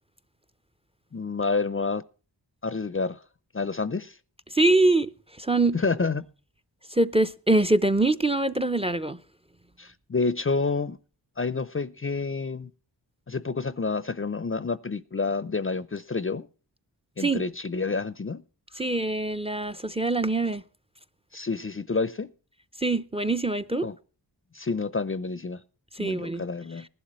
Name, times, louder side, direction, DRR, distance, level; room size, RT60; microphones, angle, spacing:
voice 1, 1.1-2.0 2.6-3.2 3.5-4.1 5.7-6.3 9.8-11.0 11.4-12.7 13.3-16.5 17.2-18.4 21.3-22.3 23.8-24.0 24.5-25.6 26.0-26.9, left 4 dB, 30° left, 0.6 m, -29 dB
voice 2, 4.5-5.1 5.4-5.8 6.9-9.2 17.2-17.4 18.8-20.6 22.8-23.9 25.9-26.4, right 2 dB, 15° right, 0.6 m, -24 dB
19.5 x 11.5 x 3.1 m
wide cardioid pair, 60°, 43 cm